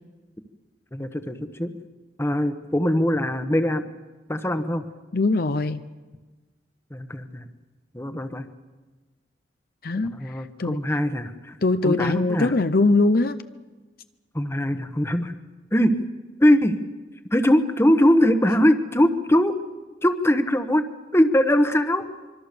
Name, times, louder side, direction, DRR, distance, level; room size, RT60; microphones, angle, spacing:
voice 1, 0.9-1.7 2.2-3.8 4.3-4.8 6.9-7.5 7.9-8.4 9.9-11.6 11.8-12.5 14.3-15.3 15.7-16.0 16.4-16.8 17.3-19.6 20.0-20.8 21.1-22.0, equal, 15° left, 9 dB, 1.1 m, -21 dB
voice 2, 5.1-5.8 9.8-10.8 11.6-13.4, left 3 dB, 55° left, 11 dB, 0.7 m, -22 dB
25.0 x 24.0 x 6.8 m, 1.3 s
head